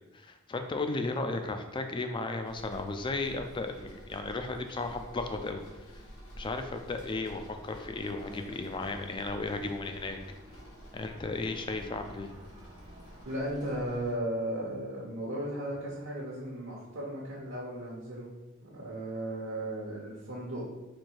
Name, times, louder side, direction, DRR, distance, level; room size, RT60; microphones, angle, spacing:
voice 1, 0.1-5.6 6.4-10.2 10.9-12.3, left 3 dB, 25° left, 6 dB, 0.3 m, -35 dB
sound 1, 2.4-14.1, equal, 90° left, 1.3 m, -50 dB
sound 2, 7.5-13.4, equal, 25° right, 0.6 m, -55 dB
sound 3, 8.2-12.2 12.5-16.0 16.3-17.5, left 1 dB, 65° left, 1.5 m, -56 dB
voice 2, 13.3-18.3 18.6-20.7, right 1 dB, 65° right, -5 dB, 0.8 m, -36 dB
4.4 x 2.6 x 4.6 m, 1.1 s
head